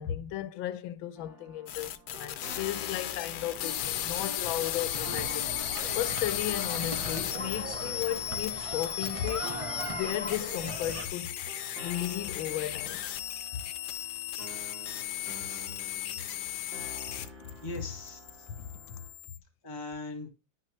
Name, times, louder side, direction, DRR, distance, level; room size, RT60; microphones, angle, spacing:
voice 1, 0.0-9.5 9.9-11.4 11.8-13.0 13.5-13.6 18.6-19.0, left 12 dB, 90° left, 1.4 m, -35 dB
sound 1, 1.2-19.1, right 1 dB, 70° right, 2.8 m, -49 dB
sound 2, 1.7-17.5 17.8-19.4, left 11 dB, 70° left, 1.2 m, -35 dB
sound 3, 4.9-11.1, right 2 dB, 20° right, 0.9 m, -39 dB
voice 2, 15.4-15.7 17.6-18.5 19.6-20.3, left 2 dB, 25° left, 1.7 m, -40 dB
10.0 x 5.9 x 3.1 m
omnidirectional pair, 2.1 m